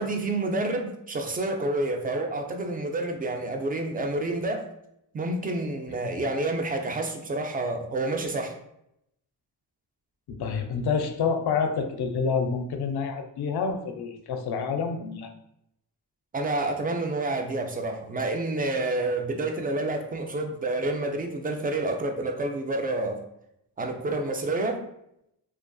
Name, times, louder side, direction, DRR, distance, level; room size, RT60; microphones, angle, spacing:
voice 1, 0.0-4.6 5.1-8.5 16.3-23.2 23.8-24.8, right 2 dB, 20° right, 4 dB, 0.4 m, -29 dB
voice 2, 10.3-15.3, left 5 dB, 65° left, 6 dB, 0.5 m, -28 dB
2.4 x 2.3 x 2.2 m, 0.78 s
supercardioid pair, 45°, 42 cm